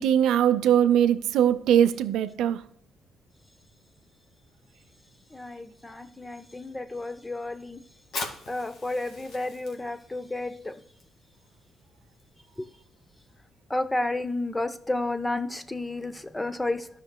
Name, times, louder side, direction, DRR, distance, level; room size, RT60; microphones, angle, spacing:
voice 1, 0.0-2.6, right 10 dB, 85° right, 0.5 m, -21 dB
voice 2, 5.3-7.8 8.5-10.8 12.6-12.7 13.7-16.9, left 2 dB, 15° left, 0.7 m, -31 dB
Fire, 8.0-15.2, left 3 dB, 75° left, 1.9 m, -44 dB
13.5 x 5.9 x 2.2 m
cardioid pair, 90°, 0 cm